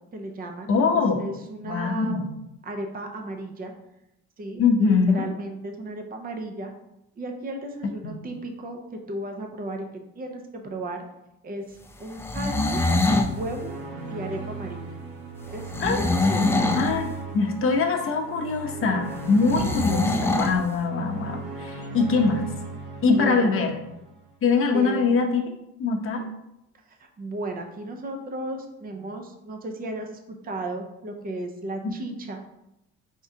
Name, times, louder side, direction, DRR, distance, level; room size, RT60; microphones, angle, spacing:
voice 1, 0.1-2.2 2.6-3.7 4.4-6.7 7.2-11.0 11.4-13.7 14.1-14.8 15.5-16.6 23.0-23.6 24.7-25.2 26.9-32.4, right 1 dB, 30° right, 4 dB, 0.6 m, -35 dB
voice 2, 0.7-1.2 1.6-2.3 4.6-5.3 8.0-8.1 15.8-16.0 16.7-22.4 23.0-23.8 24.4-25.4 25.8-26.2 31.8-31.9, left 4 dB, 45° left, 2 dB, 0.8 m, -23 dB
sound 1, 12.1-13.3 15.7-17.0 19.5-20.6, left 2 dB, 10° left, 0.3 m, -23 dB
sound 2, 12.9-24.2, right 3 dB, 90° right, 0.9 m, -37 dB
4.7 x 3.6 x 2.7 m, 0.86 s
cardioid pair, 105°, 30 cm